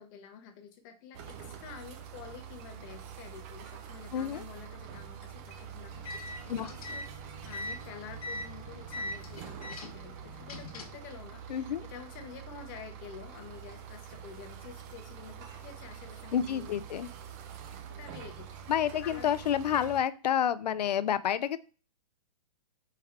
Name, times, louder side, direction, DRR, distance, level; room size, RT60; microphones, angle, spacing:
voice 1, 0.0-7.1 7.4-16.8 17.5-18.5 19.0-19.3, left 7 dB, 30° left, 4 dB, 0.7 m, -49 dB
sound 1, 1.1-20.0, right 8 dB, 25° right, 0.4 m, -46 dB
voice 2, 4.1-4.4 6.5-6.7 11.5-11.8 16.3-17.1 18.7-21.6, left 9 dB, 90° left, 15 dB, 0.4 m, -29 dB
sound 2, 5.9-11.1, left 2 dB, 60° left, 1.2 m, -42 dB
4.5 x 3.4 x 3.5 m, 0.37 s
hypercardioid pair, 150°, 20 cm